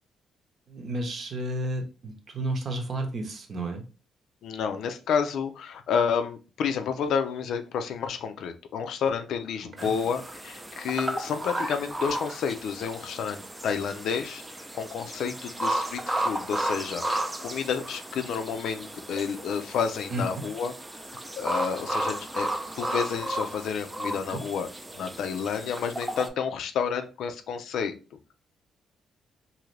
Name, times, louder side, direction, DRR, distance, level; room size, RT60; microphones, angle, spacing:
voice 1, 0.7-3.8 9.8-9.9 20.1-20.2 24.3-24.4, right 1 dB, 55° right, 4 dB, 0.8 m, -32 dB
voice 2, 4.4-20.7 21.4-22.5 22.8-24.7 24.9-27.9, left 6 dB, 80° left, 7 dB, 0.4 m, -30 dB
sound 1, 9.8-26.3, right 1 dB, 15° right, 0.5 m, -34 dB
2.6 x 2.5 x 3.2 m, 0.33 s
cardioid pair, 85°, 0 cm